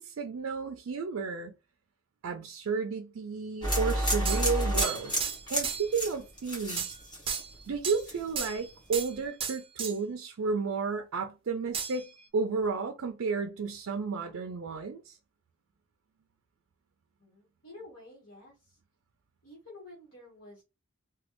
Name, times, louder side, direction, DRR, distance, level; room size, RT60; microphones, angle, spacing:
voice 1, 0.0-1.5 2.2-5.2 5.5-7.0 7.7-12.1 12.3-15.2, right 5 dB, 80° right, 0.4 m, -32 dB
sound 1, 3.6-7.7 8.0-8.5, equal, 20° left, 1.2 m, -30 dB
sound 2, 4.2-6.0 6.8-7.0 7.3-8.0 8.4-9.1 9.4-9.9 11.7-12.3, right 7 dB, 25° right, 0.5 m, -35 dB
voice 2, 17.2-18.8 19.4-20.6, left 2 dB, 65° left, 1.3 m, -50 dB
3.0 x 2.3 x 3.0 m
head